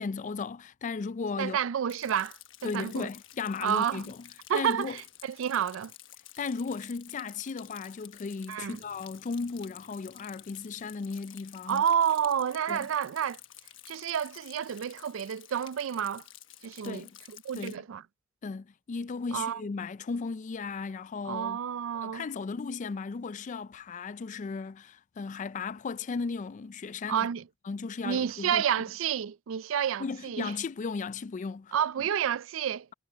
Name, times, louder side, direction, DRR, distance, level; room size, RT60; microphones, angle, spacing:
voice 1, 0.0-1.6 2.6-4.3 4.5-5.0 6.4-11.8 12.7-12.9 16.8-17.2 17.5-17.8 18.4-21.6 22.0-27.3 27.7-28.6 30.0-31.7, left 4 dB, 40° left, 0.4 m, -36 dB
voice 2, 1.4-3.1 3.6-4.1 4.5-5.9 8.5-8.8 11.7-13.4 13.9-16.2 16.6-17.1 17.4-18.0 19.3-19.6 21.3-22.3 27.1-27.4 28.0-30.5 31.7-32.9, right 8 dB, 85° right, 0.4 m, -30 dB
Rain, 1.9-17.8, left 13 dB, 75° left, 1.2 m, -51 dB
sound 1, 8.6-14.5, left 2 dB, 55° left, 2.3 m, -66 dB
head